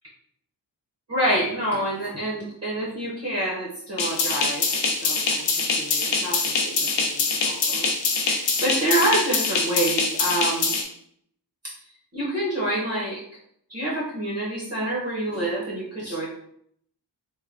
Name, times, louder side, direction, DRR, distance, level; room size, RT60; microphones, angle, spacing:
voice 1, 1.1-5.5 5.8-7.9 8.3-10.7 12.1-13.2 13.7-16.3, right 1 dB, 35° right, -6 dB, 0.7 m, -27 dB
sound 1, 4.0-10.8, left 4 dB, 85° left, 0.6 m, -24 dB
3.3 x 2.2 x 2.3 m, 0.69 s
wide cardioid pair, 160°, 43 cm